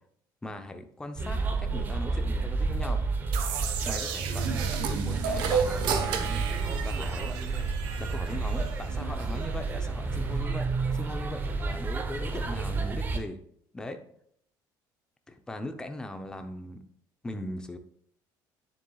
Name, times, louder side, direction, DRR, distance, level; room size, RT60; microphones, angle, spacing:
voice 1, 0.4-3.0 3.8-6.5 6.8-7.4 8.0-10.7 10.9-13.4 13.7-14.0 15.3-16.8 17.2-17.8, left 1 dB, 10° left, 7 dB, 0.7 m, -39 dB
sound 1, 1.2-13.2, right 4 dB, 25° right, 0.8 m, -30 dB
sound 2, 3.3-10.1, right 7 dB, 85° right, 1.2 m, -38 dB
sound 3, 4.8-7.5, right 6 dB, 65° right, 1.1 m, -31 dB
9.5 x 7.1 x 2.4 m, 0.66 s
cardioid pair, 160°, 8 cm